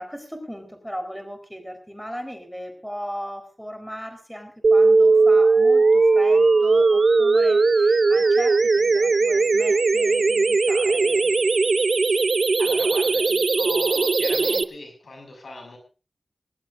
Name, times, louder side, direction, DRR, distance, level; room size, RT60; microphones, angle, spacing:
voice 1, 0.0-11.3, equal, ahead, 6 dB, 4.3 m, -37 dB
sound 1, 4.6-14.6, right 3 dB, 70° right, 0.7 m, -18 dB
voice 2, 12.0-12.3 12.6-15.8, left 1 dB, 90° left, 4 dB, 6.4 m, -39 dB
19.0 x 19.0 x 2.6 m, 0.33 s
wide cardioid pair, 90°, 0 cm